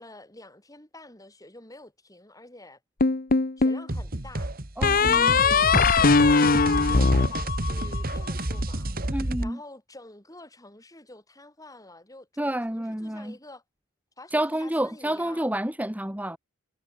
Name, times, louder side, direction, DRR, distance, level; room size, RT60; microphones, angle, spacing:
voice 1, 0.0-2.8 3.6-8.9 9.4-13.6 14.2-15.5, left 2 dB, 15° left, 7.7 m, -48 dB
sound 1, 3.0-3.8 4.8-8.2, left 4 dB, 40° left, 0.9 m, -20 dB
sound 2, 3.9-9.5, right 1 dB, 45° right, 2.1 m, -30 dB
voice 2, 4.8-5.4 9.1-9.6 12.4-13.4 14.3-16.4, right 1 dB, 5° right, 1.9 m, -29 dB
head